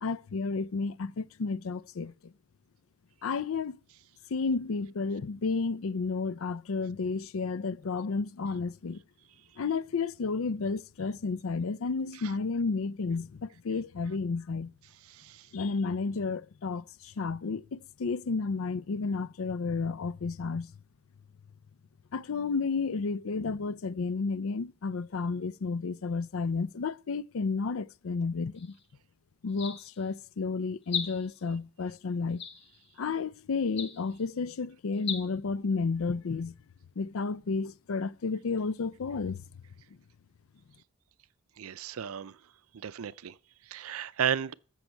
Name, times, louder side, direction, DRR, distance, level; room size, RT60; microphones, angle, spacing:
voice 1, 0.0-2.1 3.2-3.8 4.3-9.0 9.6-14.7 15.5-20.7 22.1-28.7 29.4-32.4 33.0-36.5 37.0-39.4, left 4 dB, 75° left, 0.5 m, -32 dB
voice 2, 15.1-15.5 41.6-42.4 42.7-43.4 43.7-44.5, right 8 dB, 80° right, 0.5 m, -34 dB
sound 1, 28.6-28.8 29.5-30.1 30.8-31.5 32.4-32.9 33.7-34.2 34.9-35.2, left 7 dB, 55° left, 1.6 m, -37 dB
13.5 x 7.3 x 4.5 m
head